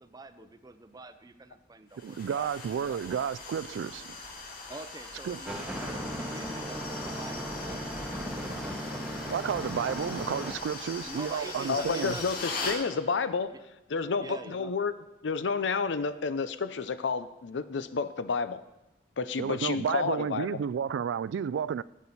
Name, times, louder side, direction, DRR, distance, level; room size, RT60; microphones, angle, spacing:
voice 1, 0.0-2.5 2.9-3.0 4.7-8.9 11.0-12.5 13.5-13.6 14.2-14.7, right 2 dB, 20° right, 0.6 m, -46 dB
sound 1, 2.0-12.8, left 3 dB, 55° left, 1.8 m, -40 dB
voice 2, 2.0-4.1 5.2-5.4 9.3-12.2 19.4-21.8, right 7 dB, 90° right, 0.3 m, -31 dB
sound 2, 5.5-10.5, equal, 5° right, 1.1 m, -37 dB
voice 3, 11.7-13.5 13.9-14.9 15.2-18.6 19.2-20.5, left 5 dB, 85° left, 0.6 m, -30 dB
12.5 x 8.4 x 4.2 m
head